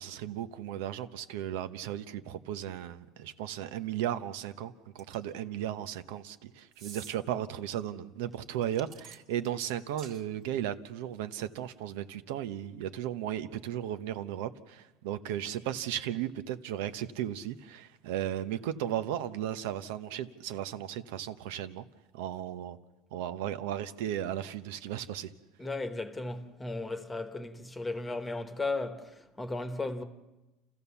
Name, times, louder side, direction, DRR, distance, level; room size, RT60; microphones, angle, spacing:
voice 1, 0.0-21.8 22.1-22.8 23.1-25.3, right 11 dB, 85° right, 1.0 m, -35 dB
sound 1, 5.0-5.4 6.7-7.2 8.6-10.2, right 6 dB, 50° right, 1.9 m, -48 dB
voice 2, 25.6-30.0, left 3 dB, 10° left, 1.3 m, -35 dB
29.5 x 14.5 x 7.1 m
cardioid pair, 150°, 0 cm